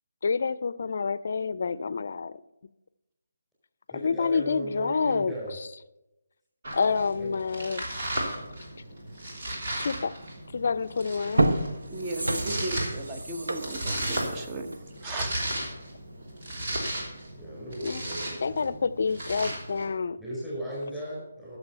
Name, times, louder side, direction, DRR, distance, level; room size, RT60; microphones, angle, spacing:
voice 1, 0.2-2.3 3.9-5.3 6.7-7.8 9.8-10.1 10.5-11.5 17.8-18.0 18.4-20.2, left 5 dB, 55° left, 17 dB, 0.5 m, -28 dB
voice 2, 3.9-5.5 7.2-7.3 12.4-12.8 17.3-18.8 20.2-21.6, equal, 5° right, -7 dB, 4.9 m, -37 dB
Domestic sounds home sounds, 6.6-19.9, right 1 dB, 55° right, 3.2 m, -35 dB
sound 1, 10.6-10.7 11.2-15.9 16.3-16.4, right 1 dB, 85° right, 1.1 m, -30 dB
voice 3, 11.9-14.7 15.0-15.3, right 2 dB, 25° right, 5 dB, 1.2 m, -36 dB
13.5 x 6.7 x 5.7 m, 0.93 s
figure-of-eight pair, 155°, 0 cm